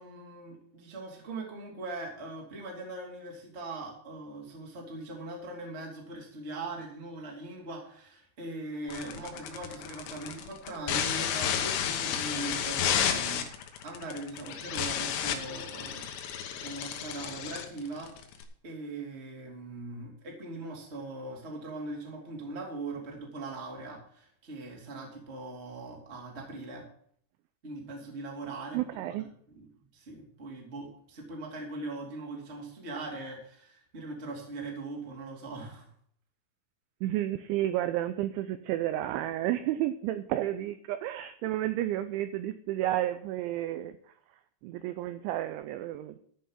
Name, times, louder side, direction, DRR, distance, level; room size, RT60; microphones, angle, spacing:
voice 1, 0.0-13.4 13.8-18.1 18.6-26.8 27.6-28.8 29.0-29.1 29.5-29.7 29.9-35.9, right 2 dB, 25° right, 0 dB, 1.5 m, -41 dB
sound 1, 8.9-18.4, left 9 dB, 80° left, 3.8 m, -32 dB
voice 2, 28.7-29.3 37.0-44.0 44.6-46.2, right 13 dB, 90° right, 10 dB, 2.6 m, -31 dB
14.0 x 5.6 x 7.3 m, 0.63 s
omnidirectional pair, 6.0 m